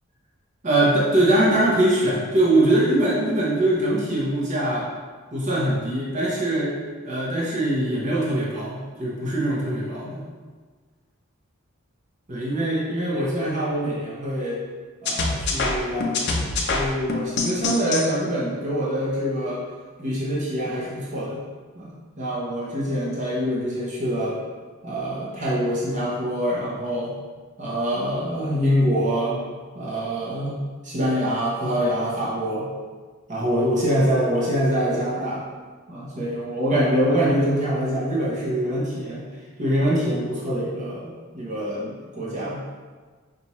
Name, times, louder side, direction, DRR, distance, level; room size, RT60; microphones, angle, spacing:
voice 1, 0.6-4.9 5.3-6.7 7.0-10.2 12.3-14.6 15.0-19.6 20.0-21.4 21.7-24.4 24.8-27.1 27.6-29.4 29.7-30.6 30.8-32.7 33.3-35.4 35.9-39.2 39.6-42.7, right 1 dB, 35° right, -7 dB, 0.9 m, -24 dB
sound 1, 15.0-18.0, left 3 dB, 50° left, 0.5 m, -25 dB
5.4 x 2.6 x 3.0 m, 1.5 s
head